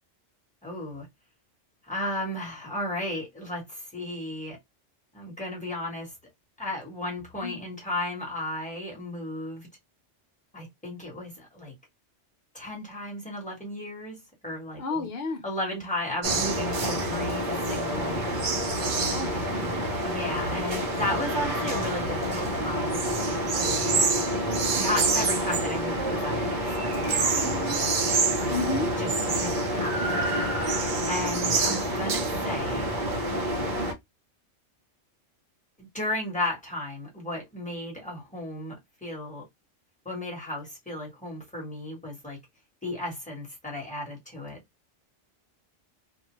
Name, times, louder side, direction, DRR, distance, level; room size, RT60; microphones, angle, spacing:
voice 1, 0.6-1.1 1.8-4.6 5.1-6.1 6.6-9.7 10.5-11.7 12.5-15.1 15.4-17.4 17.7-18.4 20.0-24.0 24.7-28.1 28.4-28.5 29.0-30.3 31.0-32.9 35.8-39.4 40.0-42.4 42.8-44.6, left 1 dB, 5° left, 1.3 m, -34 dB
voice 2, 14.8-15.4 19.1-19.7 28.5-28.9 31.5-31.9, left 3 dB, 60° left, 1.0 m, -32 dB
sound 1, 16.2-33.9, right 2 dB, 45° right, 0.8 m, -27 dB
2.6 x 2.3 x 3.0 m
omnidirectional pair, 1.2 m